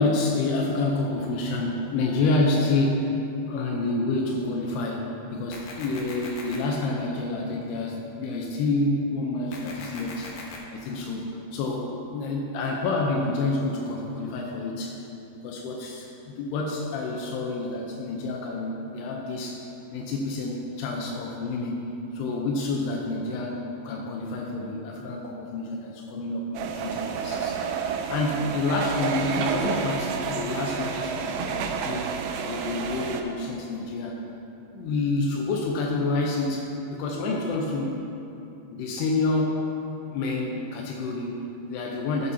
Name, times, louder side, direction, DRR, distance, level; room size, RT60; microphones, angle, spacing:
voice 1, 0.0-3.1 3.5-10.4 10.7-15.1 15.4-21.9 22.1-32.1 32.5-34.2 34.7-38.0 38.7-39.6 40.1-42.3, left 2 dB, 85° left, 0 dB, 2.8 m, -28 dB
sound 1, 5.5-6.6 9.5-10.6, left 3 dB, 70° left, 2.8 m, -40 dB
sound 2, 26.5-33.2, right 6 dB, 85° right, 2.0 m, -30 dB
13.0 x 9.9 x 2.8 m, 2.9 s
omnidirectional pair, 4.6 m